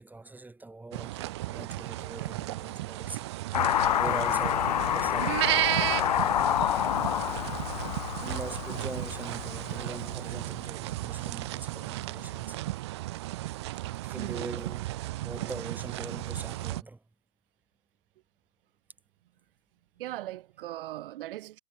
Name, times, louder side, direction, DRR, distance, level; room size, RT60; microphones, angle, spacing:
voice 1, 0.0-3.3 3.7-5.4 8.2-12.7 14.0-14.9 15.2-17.0, right 2 dB, 5° right, 6.3 m, -42 dB
sound 1, 0.9-16.8, right 17 dB, 20° right, 0.6 m, -34 dB
Car passing by / Accelerating revving vroom, 3.5-10.1, left 10 dB, 30° left, 0.5 m, -28 dB
voice 2, 14.2-14.6 20.0-21.6, right 15 dB, 40° right, 7.6 m, -39 dB
figure-of-eight pair, 125°, 41 cm